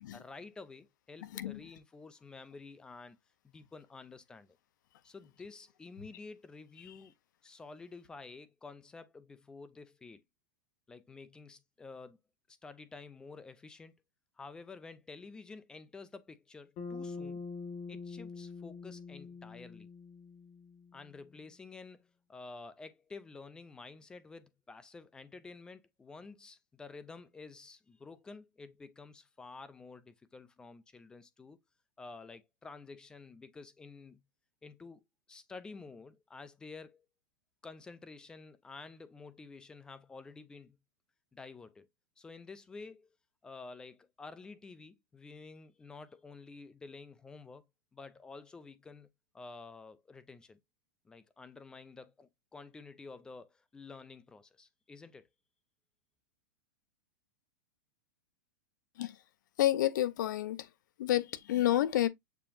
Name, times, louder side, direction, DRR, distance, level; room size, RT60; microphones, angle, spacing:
voice 1, 0.1-3.2 3.5-4.6 5.0-7.1 7.4-10.2 10.9-12.2 12.5-13.9 14.4-17.4 17.9-19.9 20.9-31.6 32.0-34.2 34.6-37.0 37.6-40.8 41.3-41.9 42.2-43.2 43.4-47.6 47.9-49.1 49.3-50.6 51.0-55.3, left 4 dB, 10° left, 0.3 m, -50 dB
voice 2, 1.2-1.6 59.0-59.2 59.6-60.7 61.0-62.1, left 13 dB, 70° left, 0.6 m, -30 dB
Bass guitar, 16.8-21.1, left 4 dB, 35° left, 1.3 m, -44 dB
6.8 x 2.8 x 2.4 m
supercardioid pair, 155°, 10 cm